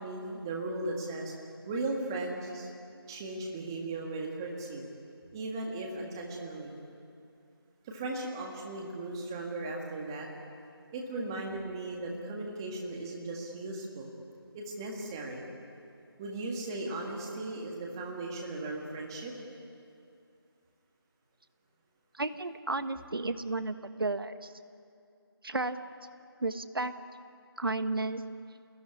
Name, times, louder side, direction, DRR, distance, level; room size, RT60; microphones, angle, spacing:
voice 1, 0.0-1.3 1.6-2.7 3.1-4.9 5.3-6.8 7.8-10.3 10.9-14.1 14.5-15.4 16.2-19.3, right 2 dB, 10° right, 0 dB, 1.7 m, -37 dB
voice 2, 22.1-24.5 25.4-25.8 26.4-26.9 27.6-28.2, right 2 dB, 60° right, 10 dB, 1.5 m, -33 dB
28.0 x 20.0 x 10.0 m, 2.5 s
figure-of-eight pair, 170°, 13 cm